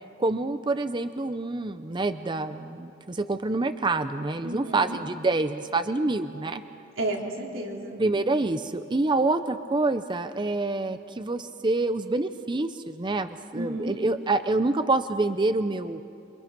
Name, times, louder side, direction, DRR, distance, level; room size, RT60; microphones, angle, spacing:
voice 1, 0.2-6.6 8.0-16.0, right 2 dB, 25° right, 10 dB, 0.6 m, -27 dB
voice 2, 4.4-5.0 7.0-8.0 13.5-14.0, right 1 dB, 90° right, -1 dB, 3.9 m, -32 dB
27.5 x 25.0 x 5.9 m, 2.7 s
head